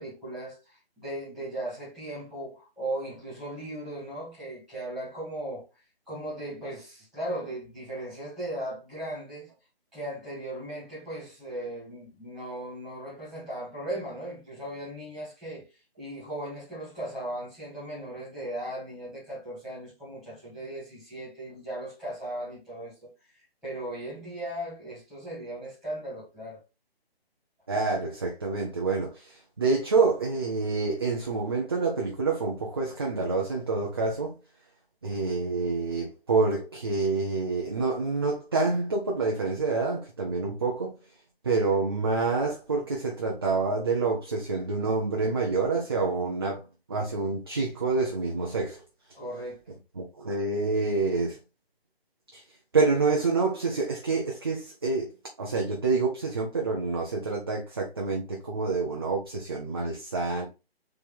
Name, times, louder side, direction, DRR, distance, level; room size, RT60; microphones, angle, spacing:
voice 1, 0.0-5.7 6.1-9.5 9.9-15.7 16.0-26.6 49.1-49.8, right 1 dB, ahead, 2.2 m, -37 dB
voice 2, 27.7-34.3 35.0-41.0 41.4-48.8 50.0-51.4 52.3-52.4 52.7-55.1 55.4-60.5, right 3 dB, 25° right, 0.6 m, -27 dB
4.4 x 3.3 x 3.5 m
figure-of-eight pair, 160°, 31 cm